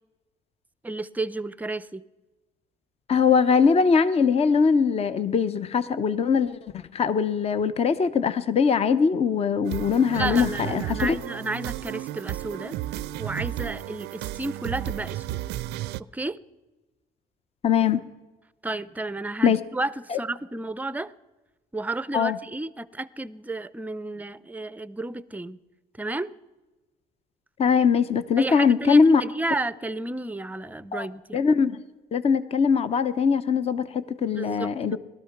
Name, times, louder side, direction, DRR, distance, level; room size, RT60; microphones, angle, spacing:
voice 1, 0.8-2.0 10.1-12.8 13.2-15.4 16.1-16.4 18.6-21.1 21.7-25.6 26.0-26.3 28.4-31.5 34.3-35.0, right 2 dB, 10° right, 18 dB, 0.5 m, -32 dB
voice 2, 3.1-6.6 6.9-11.2 17.6-18.0 19.4-19.6 20.1-20.2 22.1-22.4 27.6-29.2 30.9-31.1 31.3-31.8 32.1-35.0, left 6 dB, 35° left, 13 dB, 0.7 m, -21 dB
sound 1, 9.6-16.0, right 14 dB, 80° right, 0.5 m, -33 dB
18.5 x 13.0 x 5.9 m, 1.2 s
cardioid pair, 110°, 17 cm